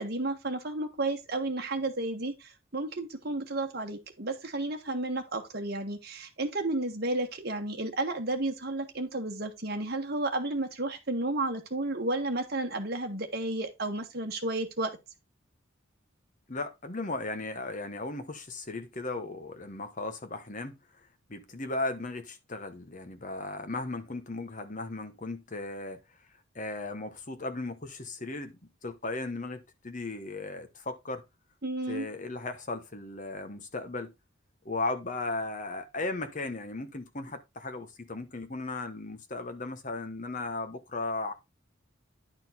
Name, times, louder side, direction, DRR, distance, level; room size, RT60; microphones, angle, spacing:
voice 1, 0.0-15.0 31.6-32.1, right 2 dB, 50° right, 1.5 m, -32 dB
voice 2, 16.5-20.8 21.3-26.0 26.5-31.2 31.9-34.1 34.6-41.3, left 2 dB, 40° left, 1.2 m, -36 dB
10.5 x 4.4 x 4.1 m
head